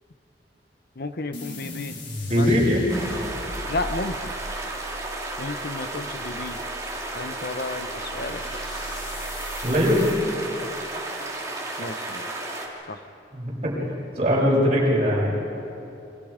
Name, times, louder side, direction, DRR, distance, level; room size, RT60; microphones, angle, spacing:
voice 1, 1.0-2.0 2.3-2.5 3.7-4.3 5.4-6.6 7.1-8.6 11.8-12.3 12.9-13.0, left 2 dB, 60° left, 9 dB, 1.0 m, -32 dB
sound 1, 1.3-10.2, left 1 dB, 85° left, 4.4 m, -38 dB
voice 2, 2.3-2.9 9.6-10.1 13.3-13.8 14.2-15.3, equal, 35° right, -5 dB, 7.4 m, -21 dB
sound 2, 2.9-12.7, right 2 dB, 20° right, 3.1 m, -33 dB
29.5 x 24.5 x 5.2 m, 2.8 s
head